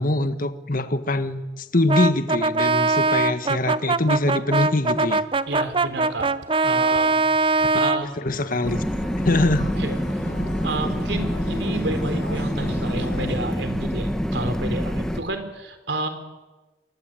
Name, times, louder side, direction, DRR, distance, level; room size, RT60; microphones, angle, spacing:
voice 1, 0.0-5.2 7.5-7.7 8.2-9.7, left 1 dB, 50° left, 10 dB, 1.6 m, -23 dB
Brass instrument, 1.9-8.1, right 3 dB, 30° right, 0.8 m, -21 dB
voice 2, 5.5-6.3 6.6-7.2 7.7-8.2 9.8-10.3 10.6-16.1, right 2 dB, 65° right, 8 dB, 4.1 m, -30 dB
Acoustic guitar, 8.3-13.5, equal, 70° left, 7.0 m, -35 dB
sound 1, 8.6-15.2, equal, 5° left, 1.7 m, -26 dB
27.0 x 22.5 x 9.2 m, 1.2 s
head